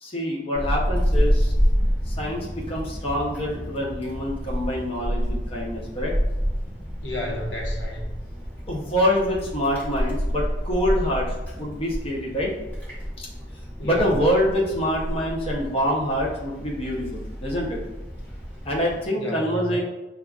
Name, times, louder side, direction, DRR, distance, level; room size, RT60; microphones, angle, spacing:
voice 1, 0.0-1.5 2.1-6.1 8.7-12.5 13.2-13.3 13.8-17.8 18.6-19.8, equal, 30° left, -3 dB, 0.7 m, -26 dB
Wind, 0.5-19.1, equal, 10° left, 1.5 m, -28 dB
voice 2, 7.0-8.2 13.8-14.1 19.2-19.8, left 1 dB, 80° left, -1 dB, 0.9 m, -32 dB
6.5 x 2.3 x 2.3 m, 1.0 s
head